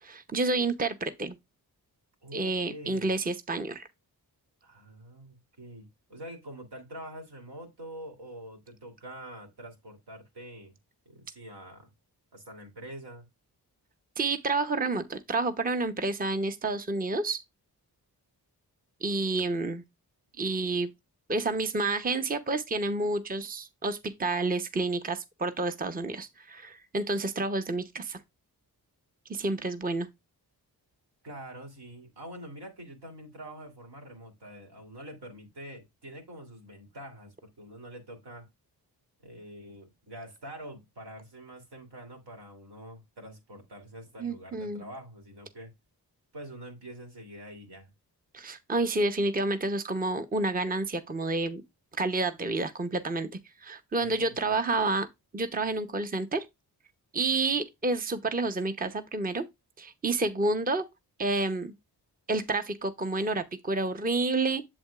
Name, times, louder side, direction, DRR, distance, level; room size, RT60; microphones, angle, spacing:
voice 1, 0.0-1.4 2.3-3.8 14.2-17.4 19.0-19.8 20.4-20.9 21.3-28.2 29.3-30.1 44.2-44.8 48.3-51.6 52.0-53.3 53.6-55.1 55.3-56.5 57.1-59.4 59.8-60.8 61.2-61.7 62.3-64.6, right 3 dB, 20° right, 0.8 m, -29 dB
voice 2, 2.2-3.1 4.6-10.7 11.0-11.9 12.3-13.2 31.2-38.5 39.2-45.7 46.3-47.9 54.0-54.6, right 1 dB, 75° right, 3.1 m, -45 dB
7.8 x 7.4 x 2.4 m
cardioid pair, 65°, 40 cm